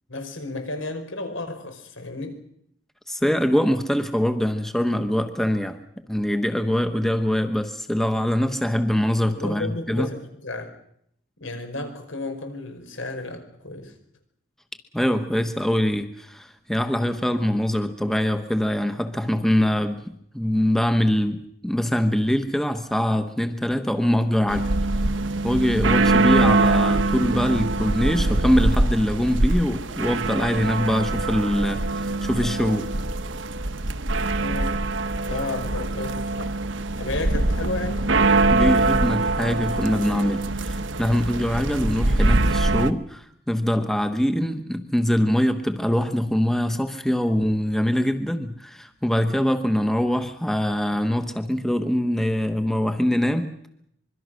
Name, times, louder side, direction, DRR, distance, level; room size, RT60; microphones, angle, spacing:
voice 1, 0.1-2.4 9.3-10.7 11.4-13.9 34.4-34.8 35.3-36.6 37.0-38.1, left 2 dB, 80° left, 7 dB, 5.3 m, -32 dB
voice 2, 3.1-5.8 6.1-10.1 14.9-24.7 25.4-32.9 38.5-53.5, equal, ahead, 8 dB, 1.1 m, -23 dB
sound 1, 24.5-42.9, right 2 dB, 70° right, 1.2 m, -23 dB
25.5 x 22.5 x 6.4 m, 0.72 s
head